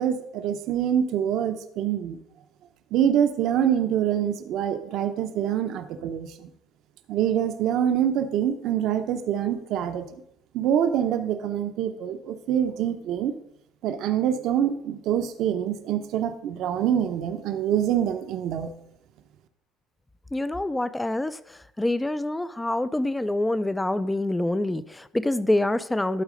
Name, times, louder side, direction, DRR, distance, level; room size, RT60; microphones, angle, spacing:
voice 1, 0.0-2.2 2.9-6.5 7.1-10.1 10.5-13.3 13.8-18.7, right 9 dB, 60° right, 7 dB, 0.7 m, -25 dB
voice 2, 20.3-21.4 21.8-26.2, left 1 dB, 10° left, 16 dB, 0.3 m, -26 dB
12.0 x 4.1 x 5.0 m, 0.74 s
cardioid pair, 140°, 0 cm